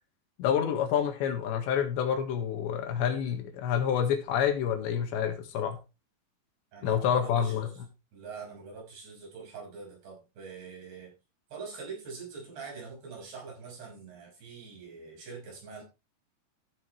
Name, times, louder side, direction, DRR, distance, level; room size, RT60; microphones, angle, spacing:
voice 1, 0.4-5.8 6.8-7.7, left 8 dB, 85° left, 5 dB, 3.9 m, -28 dB
voice 2, 6.7-7.8 8.1-11.1 11.5-15.8, right 5 dB, 65° right, -1 dB, 7.7 m, -44 dB
14.5 x 7.9 x 3.3 m, 0.27 s
omnidirectional pair, 5.0 m